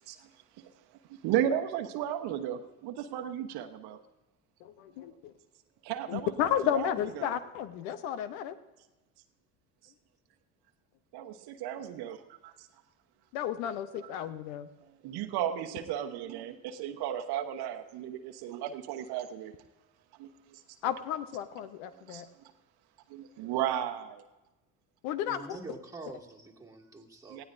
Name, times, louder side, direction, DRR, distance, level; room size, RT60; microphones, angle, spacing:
voice 1, 1.1-4.0 5.8-6.3 6.7-6.9 7.1-7.3 11.1-12.7 13.9-14.3 15.0-19.5 20.2-20.6 22.1-22.2 23.1-24.2 27.3-27.4, right 10 dB, 60° right, 7 dB, 1.1 m, -34 dB
voice 2, 4.6-5.3 6.1-8.6 13.3-14.7 20.8-22.3 25.0-25.4, left 10 dB, 70° left, 13 dB, 0.9 m, -32 dB
voice 3, 25.2-27.4, right 3 dB, 10° right, -1 dB, 2.2 m, -46 dB
19.0 x 15.0 x 2.6 m, 1.1 s
hypercardioid pair, 65°, 43 cm